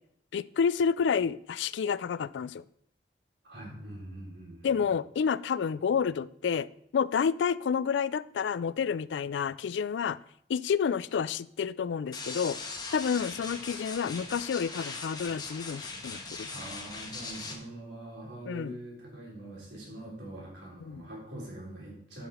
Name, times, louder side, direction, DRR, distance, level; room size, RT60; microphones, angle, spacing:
voice 1, 0.3-2.6 4.6-6.7 6.9-10.2 10.5-12.6 12.9-16.5 18.5-18.8 20.8-21.0, left 6 dB, 90° left, 18 dB, 0.3 m, -29 dB
voice 2, 3.4-5.0 16.5-22.3, right 1 dB, 80° right, -4 dB, 3.8 m, -44 dB
sound 1, 12.1-17.6, left 3 dB, 25° left, 1.2 m, -40 dB
11.0 x 5.8 x 4.3 m, 0.69 s
head